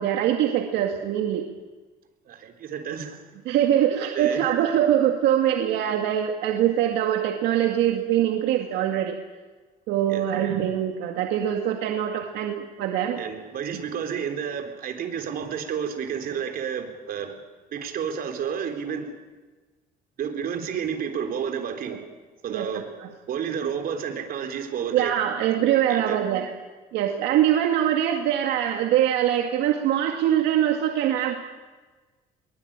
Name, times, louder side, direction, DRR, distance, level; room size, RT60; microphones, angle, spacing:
voice 1, 0.0-1.5 3.5-9.2 9.9-13.2 21.9-22.0 22.5-23.1 24.9-26.5 26.9-31.3, right 11 dB, 85° right, 3 dB, 2.1 m, -23 dB
voice 2, 2.3-3.2 4.1-4.4 10.1-10.3 13.1-17.3 17.7-19.1 20.2-22.0 22.4-22.9 23.3-25.1 25.6-26.2, right 7 dB, 60° right, 5 dB, 3.9 m, -31 dB
22.5 x 21.5 x 8.9 m, 1.3 s
cardioid pair, 110°, 17 cm